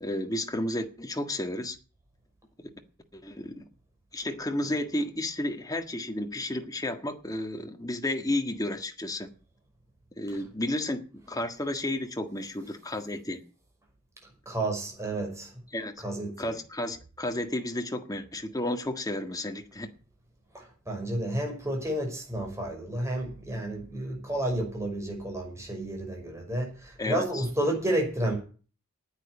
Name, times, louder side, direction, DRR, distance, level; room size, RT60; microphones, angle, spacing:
voice 1, 0.0-1.8 2.6-2.7 3.1-3.6 4.1-9.3 10.2-13.4 15.7-16.1 16.4-19.9 27.0-27.4, left 1 dB, 15° left, 1.6 m, -32 dB
voice 2, 14.5-15.5 16.0-16.5 20.5-28.4, right 1 dB, 15° right, 5.8 m, -31 dB
9.6 x 9.4 x 9.4 m
head